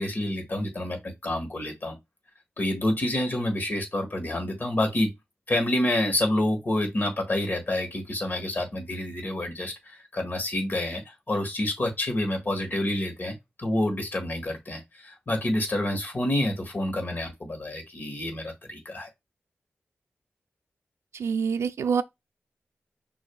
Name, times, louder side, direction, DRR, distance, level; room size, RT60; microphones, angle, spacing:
voice 1, 0.0-2.0 2.6-5.1 5.5-11.0 11.3-19.1, left 1 dB, 45° left, 1.6 m, -28 dB
voice 2, 21.1-22.0, right 6 dB, 90° right, 0.4 m, -26 dB
6.2 x 2.6 x 2.3 m
wide cardioid pair, 85°, 5 cm